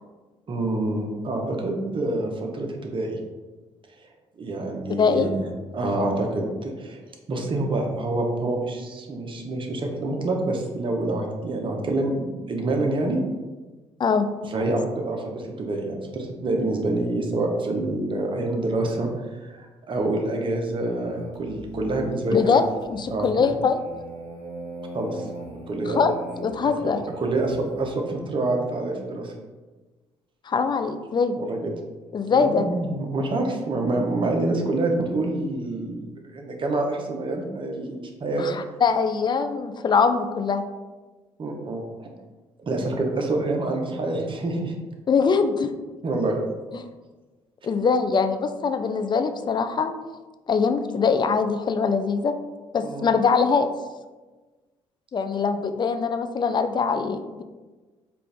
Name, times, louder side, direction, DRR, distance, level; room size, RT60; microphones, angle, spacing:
voice 1, 0.5-3.2 4.4-5.5 5.7-7.0 7.3-13.2 14.4-22.6 23.1-23.5 24.9-25.3 25.7-26.0 27.2-29.3 31.4-31.7 32.3-38.5 41.4-42.1 42.6-44.7 46.0-46.4 52.8-53.1, right 2 dB, 45° right, 2 dB, 0.9 m, -27 dB
voice 2, 5.0-5.3 14.0-14.3 22.3-22.6 22.9-23.8 25.9-27.0 30.5-31.4 32.1-32.7 38.4-40.6 45.1-45.7 46.7-46.8 47.6-49.9 50.5-52.3 52.7-53.7 55.1-57.4, left 5 dB, 40° left, 9 dB, 0.4 m, -22 dB
sound 1, 20.8-27.8, right 1 dB, 70° right, 1.2 m, -40 dB
4.6 x 2.5 x 3.4 m, 1.3 s
supercardioid pair, 60°, 12 cm